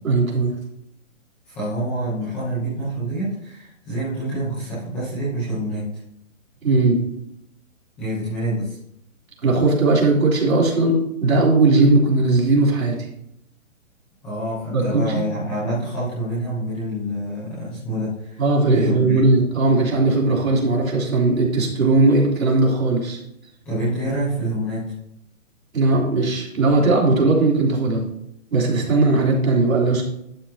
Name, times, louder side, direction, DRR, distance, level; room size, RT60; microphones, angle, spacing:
voice 1, 0.0-0.5 6.6-7.0 9.4-13.0 14.7-15.2 18.4-23.2 25.7-28.0 28.5-30.0, right 3 dB, 80° right, -2 dB, 3.4 m, -18 dB
voice 2, 1.4-6.0 8.0-8.8 14.2-18.4 18.7-19.2 23.6-24.8, right 1 dB, 5° left, -11 dB, 0.7 m, -27 dB
11.5 x 7.3 x 2.9 m, 0.78 s
hypercardioid pair, 170°, 41 cm